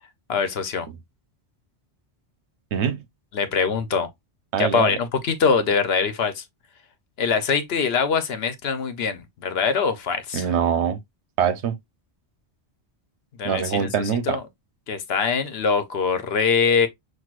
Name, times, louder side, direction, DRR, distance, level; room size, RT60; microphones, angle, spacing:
voice 1, 0.3-0.9 3.3-4.1 4.6-6.4 7.2-10.5 13.4-13.9 14.3-14.4 14.9-16.9, left 5 dB, 70° left, 1.0 m, -23 dB
voice 2, 2.7-3.0 4.5-4.9 10.3-11.0 11.4-11.7 13.4-14.4, right 8 dB, 80° right, 1.0 m, -23 dB
6.1 x 2.6 x 2.4 m
omnidirectional pair, 1.1 m